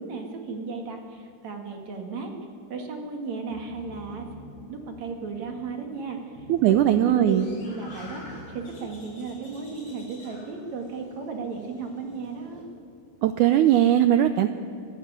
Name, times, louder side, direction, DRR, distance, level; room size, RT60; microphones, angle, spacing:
voice 1, 0.0-2.3 2.7-4.3 4.7-12.7, right 4 dB, 55° right, 4 dB, 3.2 m, -35 dB
sound 1, 3.4-9.0, equal, 30° right, 6.1 m, -47 dB
voice 2, 6.5-7.4 13.2-14.5, right 11 dB, 80° right, 11 dB, 1.8 m, -19 dB
sound 2, 7.3-12.6, left 1 dB, 35° left, 7.2 m, -48 dB
25.5 x 15.0 x 8.9 m, 2.5 s
omnidirectional pair, 4.2 m